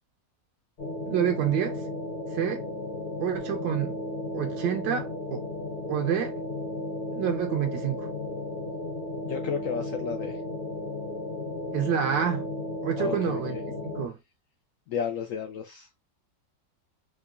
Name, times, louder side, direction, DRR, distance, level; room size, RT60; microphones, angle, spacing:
sound 1, 0.8-14.1, left 2 dB, 40° left, 0.9 m, -34 dB
voice 1, 1.1-1.8 2.3-2.7 3.2-4.0 4.3-5.4 5.9-6.3 7.1-8.1 11.7-12.5 12.8-13.6 13.9-14.2, right 9 dB, 80° right, 1.3 m, -28 dB
voice 2, 9.3-10.4 13.0-13.6 14.9-16.0, left 6 dB, 85° left, 0.7 m, -32 dB
4.8 x 2.2 x 2.4 m
omnidirectional pair, 1.9 m